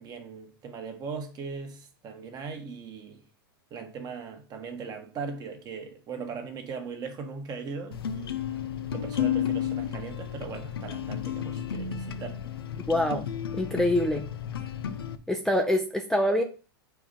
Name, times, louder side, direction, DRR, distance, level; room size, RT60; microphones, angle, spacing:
voice 1, 0.0-3.2 3.7-8.5 8.9-12.4, right 5 dB, 35° right, 1.5 m, -39 dB
sound 1, 7.9-15.1, left 9 dB, 85° left, 0.7 m, -32 dB
voice 2, 12.9-13.3 13.5-14.3 15.3-16.4, left 1 dB, 5° left, 0.7 m, -25 dB
4.7 x 3.9 x 5.3 m
hypercardioid pair, 115°, 12 cm